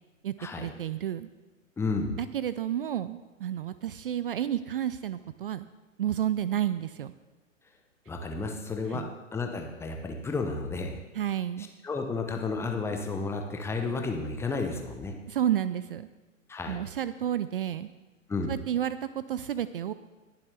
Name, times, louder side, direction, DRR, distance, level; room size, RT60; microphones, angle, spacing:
voice 1, 0.2-1.3 2.2-5.7 6.0-7.1 8.9-9.1 11.1-11.7 15.3-16.1 16.7-17.9 18.5-19.9, right 10 dB, 45° right, 14 dB, 0.4 m, -31 dB
voice 2, 1.8-2.1 8.1-11.0 11.8-15.1 16.5-16.8 18.3-18.5, left 3 dB, 5° left, 3 dB, 0.9 m, -32 dB
20.5 x 7.3 x 3.4 m, 1.1 s
figure-of-eight pair, 110°, 40 cm